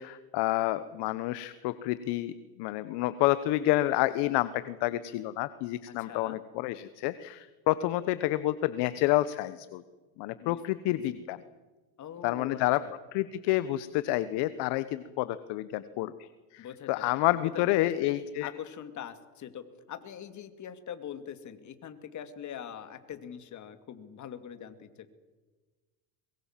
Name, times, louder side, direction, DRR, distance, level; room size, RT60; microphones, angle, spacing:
voice 1, 0.0-9.8 10.2-11.4 12.2-12.8 13.1-18.5, left 16 dB, 55° left, 14 dB, 1.1 m, -29 dB
voice 2, 5.9-6.4 10.4-10.6 11.1-11.2 12.0-12.9 16.6-16.9 17.5-18.1 18.4-25.2, left 9 dB, 35° left, 9 dB, 2.5 m, -43 dB
23.5 x 22.5 x 7.5 m, 1.3 s
supercardioid pair, 120°, 50 cm